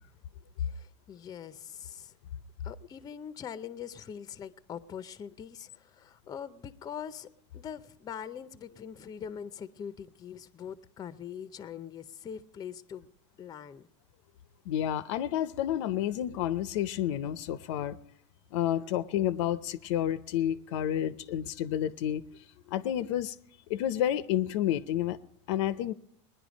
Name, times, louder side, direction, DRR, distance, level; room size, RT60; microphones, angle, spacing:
voice 1, 0.6-2.1 2.6-7.3 7.5-13.1 13.4-13.9, left 8 dB, 25° left, 0.6 m, -43 dB
voice 2, 14.7-18.0 18.5-22.3 22.7-23.3 23.7-25.2 25.5-25.9, left 11 dB, 75° left, 0.6 m, -30 dB
20.0 x 10.5 x 5.1 m
supercardioid pair, 130°, 15 cm